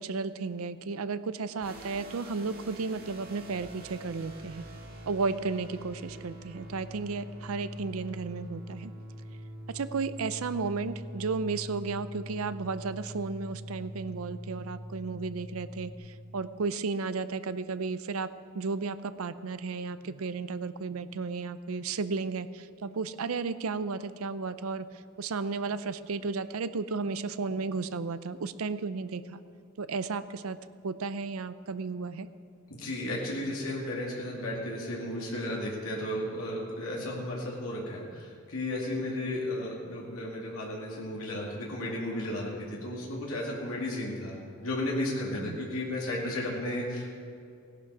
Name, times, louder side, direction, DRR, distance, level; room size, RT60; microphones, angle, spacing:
voice 1, 0.0-4.7 5.1-8.9 9.7-18.3 18.5-29.4 29.8-30.6 30.8-32.3 45.3-45.6, right 4 dB, 85° right, 13 dB, 0.6 m, -33 dB
sound 1, 1.6-15.9, equal, 45° right, 1.9 m, -44 dB
voice 2, 32.7-47.2, left 1 dB, 90° left, -4 dB, 2.5 m, -34 dB
17.0 x 11.5 x 4.9 m, 2.4 s
head